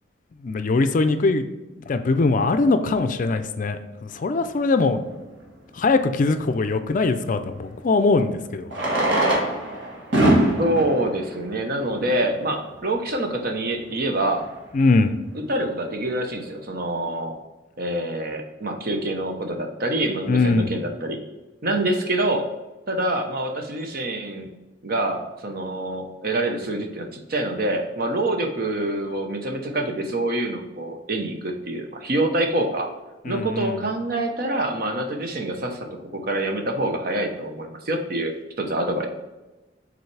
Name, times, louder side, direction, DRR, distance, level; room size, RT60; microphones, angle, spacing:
voice 1, 0.4-1.5 1.8-5.0 5.7-8.7 14.7-15.1 20.3-20.7 33.2-33.8, left 3 dB, 45° left, 9 dB, 0.4 m, -21 dB
Fireworks, 5.1-5.2 7.5-7.6 8.6-12.4 13.2-13.3 13.4-13.5 13.7-13.9 14.4-14.6, right 1 dB, 70° right, 1.6 m, -23 dB
voice 2, 10.6-14.5 15.5-17.3 17.8-21.2 21.6-22.5 22.9-24.5 24.8-32.9 33.2-35.9 36.1-39.1, right 1 dB, 55° right, 4 dB, 0.8 m, -26 dB
7.0 x 4.1 x 3.3 m, 1.1 s
head